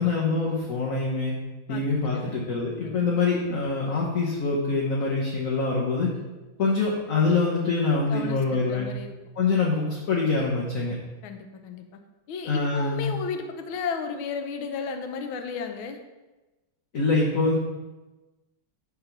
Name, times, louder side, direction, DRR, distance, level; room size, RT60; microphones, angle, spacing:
voice 1, 0.0-1.3 1.7-6.2 6.6-8.9 9.4-10.9 12.5-13.2 16.9-17.6, left 3 dB, 45° left, -4 dB, 1.4 m, -25 dB
voice 2, 8.1-9.1 11.2-11.9 12.3-16.0, left 5 dB, 75° left, 6 dB, 1.6 m, -34 dB
10.5 x 3.7 x 5.9 m, 1.1 s
omnidirectional pair, 2.3 m